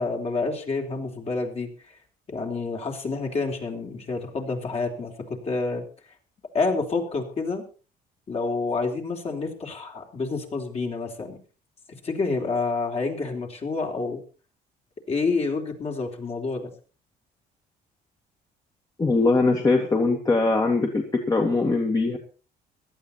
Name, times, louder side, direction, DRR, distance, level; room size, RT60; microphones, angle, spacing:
voice 1, 0.0-1.7 2.3-5.8 6.5-7.6 8.3-11.4 12.0-14.2 15.1-16.7, left 3 dB, 40° left, 2 dB, 3.7 m, -28 dB
voice 2, 19.0-22.2, left 3 dB, 20° left, 2 dB, 2.2 m, -21 dB
17.5 x 12.5 x 4.3 m, 0.37 s
cardioid pair, 110°, 17 cm